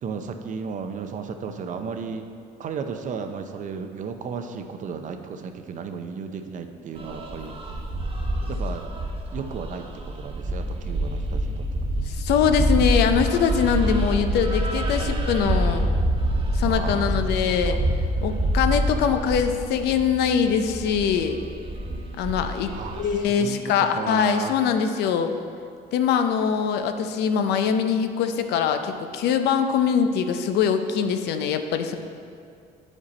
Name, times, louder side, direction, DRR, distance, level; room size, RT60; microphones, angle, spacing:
voice 1, 0.0-2.3 2.6-7.6 8.5-8.8 9.3-11.8 16.6-17.1 17.4-17.8 22.4-24.6, right 5 dB, 50° right, 7 dB, 0.6 m, -34 dB
sound 1, 7.0-23.2, right 1 dB, 35° right, 1.0 m, -26 dB
voice 2, 12.1-15.9 16.5-17.8 18.2-21.4 22.2-25.4 25.9-32.0, left 7 dB, 80° left, 7 dB, 0.6 m, -23 dB
8.6 x 5.1 x 4.2 m, 2.4 s
cardioid pair, 110°, 17 cm